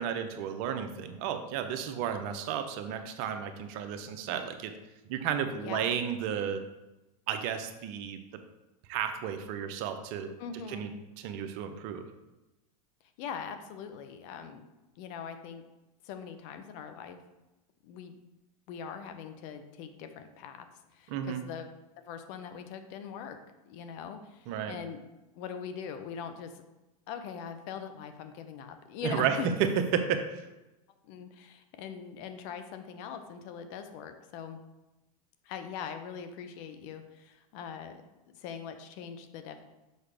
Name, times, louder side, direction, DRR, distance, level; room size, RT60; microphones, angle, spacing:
voice 1, 0.0-4.7 5.1-6.6 7.3-8.2 8.9-10.3 10.7-10.9 11.2-12.0 21.1-21.4 24.5-24.8 29.0-30.4, right 8 dB, 50° right, 7 dB, 0.7 m, -32 dB
voice 2, 5.6-5.9 10.4-10.9 13.2-14.6 15.0-15.6 16.0-17.2 17.8-18.1 18.7-20.7 20.9-21.7 22.1-23.4 23.6-25.0 25.3-26.6 27.1-29.5 31.0-34.6 35.4-38.0 38.3-39.6, left 7 dB, 50° left, 8 dB, 0.8 m, -42 dB
6.6 x 4.8 x 3.4 m, 1.0 s
hypercardioid pair, 115°, 20 cm